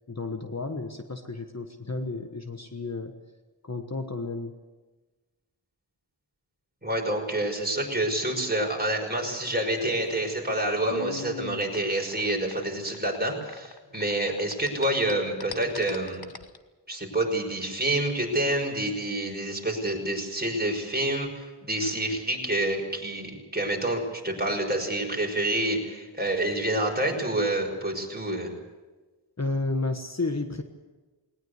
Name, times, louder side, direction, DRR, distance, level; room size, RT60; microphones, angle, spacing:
voice 1, 0.1-3.1 3.6-4.5 29.4-30.6, left 3 dB, 35° left, 6 dB, 1.4 m, -32 dB
voice 2, 6.8-16.2 16.9-21.3 21.6-28.5, right 1 dB, 20° right, 1 dB, 5.6 m, -28 dB
sound 1, 9.8-14.1 14.4-16.6, left 5 dB, 55° left, 1.3 m, -41 dB
20.5 x 19.0 x 8.3 m, 1.2 s
wide cardioid pair, 70°, 45 cm